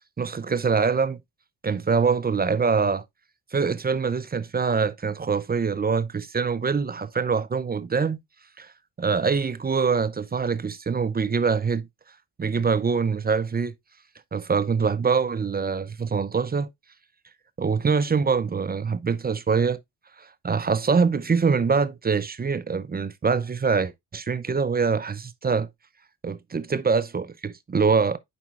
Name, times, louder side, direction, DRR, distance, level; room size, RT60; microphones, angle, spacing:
voice 1, 0.2-1.2 1.6-3.0 3.5-8.2 8.6-8.7 9.0-11.9 12.4-13.7 14.3-16.7 17.6-19.8 20.2-25.7 26.2-28.2, right 5 dB, 20° right, 0.5 m, -24 dB
9.5 x 4.3 x 2.4 m
hypercardioid pair, 50°, 46 cm